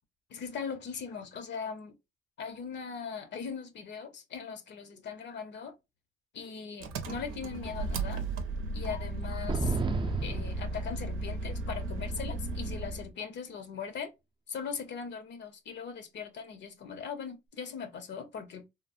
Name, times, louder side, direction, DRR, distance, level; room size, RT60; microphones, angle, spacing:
voice 1, 0.3-1.9 2.4-5.7 6.3-8.2 8.7-9.8 10.2-14.1 14.5-18.6, left 6 dB, 65° left, 0.7 m, -40 dB
Engine, 6.8-13.1, right 2 dB, 90° right, 0.6 m, -35 dB
sound 1, 9.5-11.4, right 4 dB, 25° right, 0.4 m, -32 dB
3.0 x 2.0 x 2.4 m
cardioid pair, 90°, 20 cm